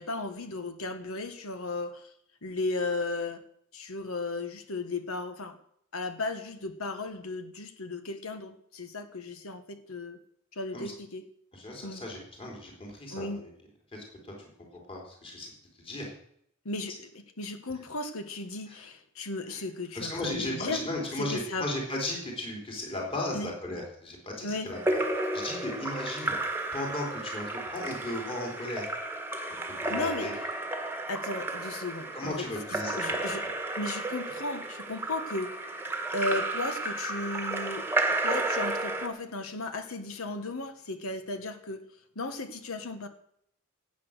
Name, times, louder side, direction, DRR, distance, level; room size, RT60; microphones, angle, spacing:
voice 1, 0.0-2.1 2.4-3.4 3.7-5.6 5.9-10.2 10.5-11.2 11.8-12.0 13.1-13.4 16.6-20.8 21.2-21.7 23.3-23.5 24.4-24.7 29.9-30.4 31.1-32.4 33.0-33.4 33.8-35.5 36.1-37.8 38.2-41.8 42.1-43.1, left 2 dB, 70° left, 9 dB, 1.5 m, -35 dB
voice 2, 11.5-13.5 13.9-14.3 14.9-15.5 15.8-16.1 18.7-18.8 19.5-19.6 19.9-25.0 25.3-26.4 26.7-28.9 29.5-30.3 32.1-33.2, left 1 dB, 25° left, -1 dB, 4.0 m, -36 dB
Splash splatter / Drip / Trickle dribble, 24.7-39.1, right 2 dB, 10° right, 1.5 m, -32 dB
17.0 x 8.6 x 6.7 m, 0.69 s
head